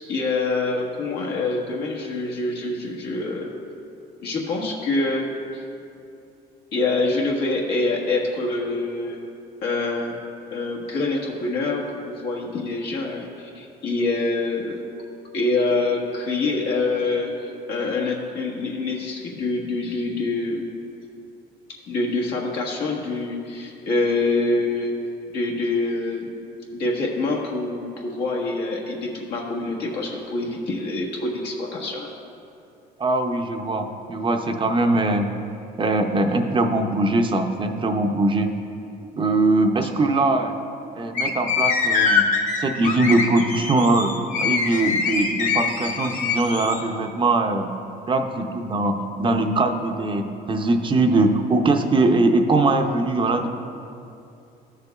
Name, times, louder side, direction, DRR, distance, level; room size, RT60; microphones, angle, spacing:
voice 1, 0.1-3.6 4.2-5.6 6.7-9.2 9.6-10.2 10.5-14.8 15.3-20.6 21.9-24.9 25.3-26.3 26.7-32.1, left 3 dB, 80° left, -2 dB, 1.5 m, -25 dB
voice 2, 33.0-35.3 35.8-38.5 39.2-40.5 41.0-42.2 42.6-44.1 44.4-47.7 48.1-53.5, right 2 dB, 30° right, 5 dB, 0.6 m, -21 dB
sound 1, 41.1-46.8, left 5 dB, 50° left, 1.1 m, -23 dB
14.5 x 6.7 x 2.3 m, 2.6 s
cardioid pair, 110°, 17 cm